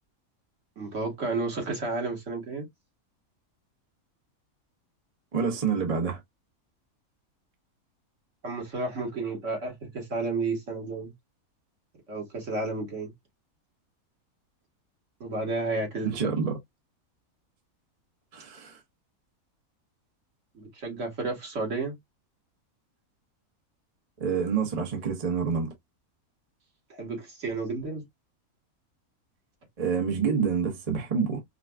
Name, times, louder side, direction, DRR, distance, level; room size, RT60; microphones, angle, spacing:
voice 1, 0.8-2.7 8.4-11.1 12.1-13.1 15.2-16.2 20.6-22.0 26.9-28.0, right 3 dB, 60° right, 1.8 m, -32 dB
voice 2, 5.3-6.2 16.0-16.6 18.3-18.8 24.2-25.7 29.8-31.4, right 6 dB, 30° right, 1.0 m, -27 dB
4.9 x 2.3 x 2.2 m
omnidirectional pair, 1.5 m